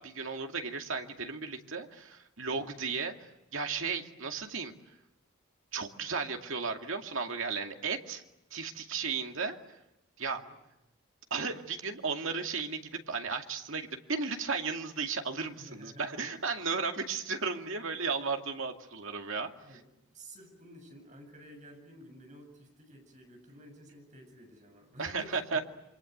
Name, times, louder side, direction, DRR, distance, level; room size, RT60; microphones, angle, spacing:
voice 1, 0.0-3.1 3.5-4.7 5.7-8.2 8.5-9.6 10.2-10.4 11.3-19.5 25.0-25.6, right 4 dB, 70° right, 4 dB, 2.4 m, -34 dB
voice 2, 15.6-16.4 19.6-19.8 20.1-25.6, equal, 35° right, 3 dB, 7.6 m, -52 dB
28.0 x 25.0 x 8.0 m, 0.90 s
head